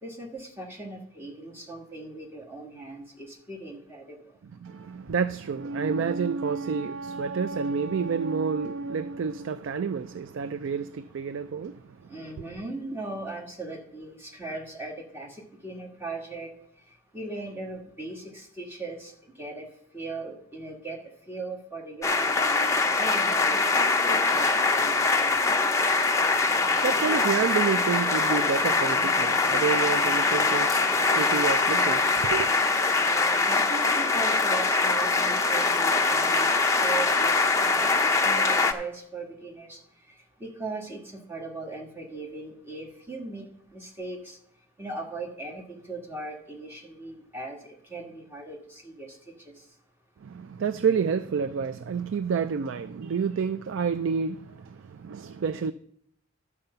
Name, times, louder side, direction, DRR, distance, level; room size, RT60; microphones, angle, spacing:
voice 1, 0.0-4.4 12.1-16.5 17.1-19.7 19.9-21.0 21.3-23.6 24.0-25.5 32.9-39.8 40.1-43.4 43.7-44.4 44.8-49.2, right 2 dB, 10° right, 1.6 m, -39 dB
voice 2, 4.6-11.8 26.5-32.5 50.2-55.7, right 6 dB, 60° right, 0.3 m, -29 dB
sound 1, 22.0-38.7, left 3 dB, 15° left, 0.6 m, -23 dB
12.0 x 4.8 x 6.7 m
head